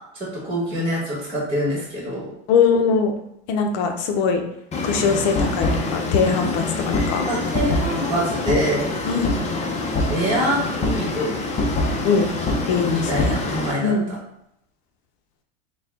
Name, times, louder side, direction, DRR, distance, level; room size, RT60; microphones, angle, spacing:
voice 1, 0.2-2.3 7.3-8.9 10.1-11.3 12.9-14.2, equal, 15° right, -4 dB, 1.3 m, -25 dB
voice 2, 2.5-3.1 3.5-4.4 4.8-7.2 9.1-9.4 12.0-12.3 12.7-13.4 13.8-14.1, left 5 dB, 55° left, 4 dB, 0.7 m, -21 dB
sound 1, 4.7-13.7, left 2 dB, 20° left, 0.6 m, -25 dB
4.1 x 2.3 x 3.6 m, 0.78 s
supercardioid pair, 130°, 33 cm